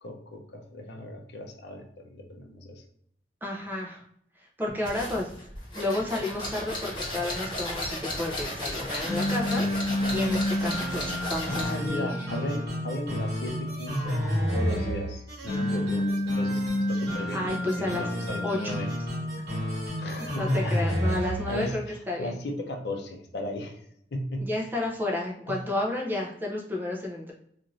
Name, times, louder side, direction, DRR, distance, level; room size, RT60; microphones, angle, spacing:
voice 1, 0.0-2.8 9.6-9.8 11.5-14.3 14.5-16.6 16.9-18.9 20.0-23.8 24.1-24.7 25.5-25.6, left 1 dB, 70° left, 2 dB, 0.6 m, -36 dB
voice 2, 3.4-4.0 4.6-5.3 5.7-12.1 17.3-18.1 18.4-18.8 20.0-21.8 22.1-22.4 24.4-27.3, left 2 dB, 10° right, -1 dB, 0.5 m, -31 dB
sound 1, 4.8-11.8, left 1 dB, 25° left, 1.0 m, -35 dB
sound 2, 8.9-21.7, equal, 65° right, 1.0 m, -29 dB
2.5 x 2.5 x 3.0 m, 0.70 s
head